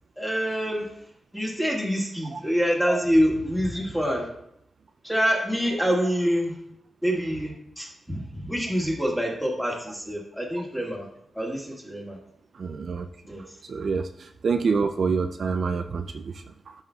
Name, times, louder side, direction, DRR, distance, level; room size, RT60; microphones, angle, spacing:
voice 1, 0.2-4.3 5.0-6.6 7.0-11.1 11.3-12.2 13.3-13.6, equal, 5° left, -2 dB, 1.8 m, -26 dB
voice 2, 12.6-13.1 13.7-16.7, right 5 dB, 55° right, 6 dB, 0.3 m, -27 dB
12.5 x 5.7 x 2.3 m, 0.76 s
wide cardioid pair, 125°, 0 cm